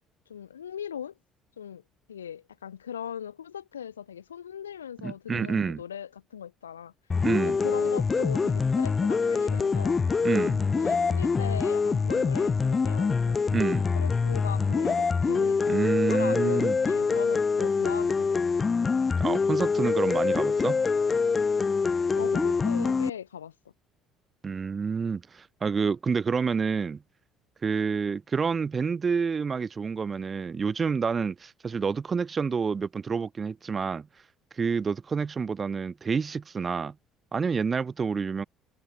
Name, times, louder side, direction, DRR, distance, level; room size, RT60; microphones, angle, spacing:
voice 1, 0.3-1.1 1.6-1.8 2.1-6.9 7.4-10.0 10.4-13.4 13.9-18.5 22.1-23.5, left 9 dB, 90° left, 5.0 m, -39 dB
voice 2, 5.0-5.8 7.2-7.6 10.2-10.6 13.5-13.9 15.7-16.8 19.2-20.8 24.4-27.0 27.6-34.1 34.6-36.9 37.3-38.4, right 5 dB, 35° right, 2.5 m, -28 dB
sound 1, 7.1-23.1, left 5 dB, 30° left, 2.6 m, -25 dB
hypercardioid pair, 60°, 0 cm